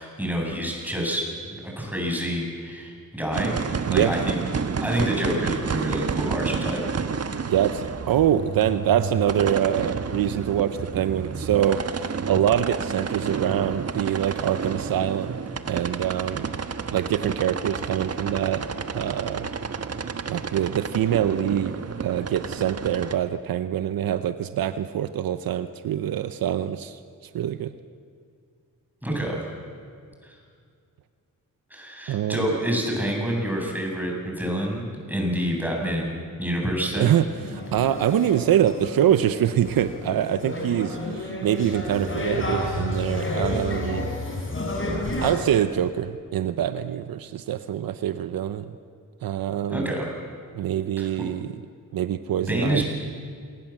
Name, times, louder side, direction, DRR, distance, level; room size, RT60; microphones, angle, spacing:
voice 1, 0.0-4.4 4.8-6.8 29.0-29.4 30.2-30.4 31.7-37.1 42.6-42.8 49.7-50.1 51.0-51.1 52.5-52.9, equal, 5° right, -1 dB, 7.9 m, -28 dB
sound 1, 3.3-23.2, right 5 dB, 45° right, 1.4 m, -30 dB
voice 2, 7.4-15.4 15.7-16.6 16.9-18.6 18.9-19.5 20.3-21.7 22.0-27.0 27.3-27.7 32.1-32.5 37.0-44.1 45.2-48.7 49.2-50.0 50.5-51.5 51.9-52.8, right 10 dB, 80° right, 12 dB, 0.8 m, -24 dB
sound 2, 37.4-45.4, left 1 dB, 35° left, 5.7 m, -30 dB
27.5 x 20.0 x 7.5 m, 2.3 s
cardioid pair, 70°, 34 cm